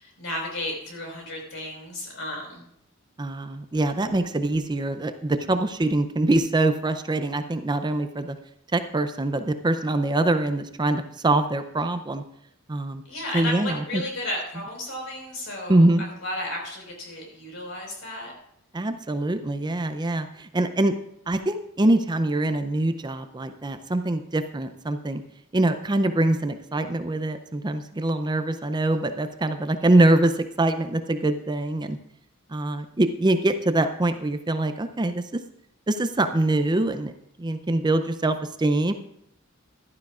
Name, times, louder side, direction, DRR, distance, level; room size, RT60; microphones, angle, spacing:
voice 1, 0.0-2.6 13.1-18.3, left 1 dB, 70° left, 0 dB, 4.7 m, -33 dB
voice 2, 3.2-8.4 8.7-12.2 12.7-13.0 13.3-14.0 15.7-16.0 18.7-20.9 21.3-25.2 25.5-32.0 32.5-35.4 35.9-37.1 37.4-38.9, right 2 dB, 20° right, 9 dB, 0.5 m, -24 dB
15.5 x 11.5 x 2.4 m, 0.75 s
head